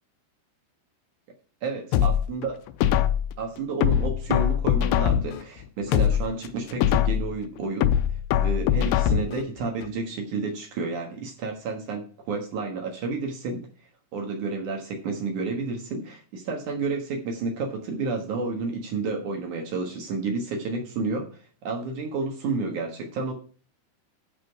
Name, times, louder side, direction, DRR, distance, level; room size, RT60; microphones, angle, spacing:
voice 1, 1.6-2.6 3.4-13.7 14.1-23.3, right 3 dB, 70° right, 2 dB, 1.9 m, -31 dB
sound 1, 1.9-3.3 3.8-5.4 5.8-7.3 7.8-9.4 9.8-9.9, left 10 dB, 85° left, 3.0 m, -22 dB
11.0 x 5.5 x 4.7 m, 0.41 s
omnidirectional pair, 5.5 m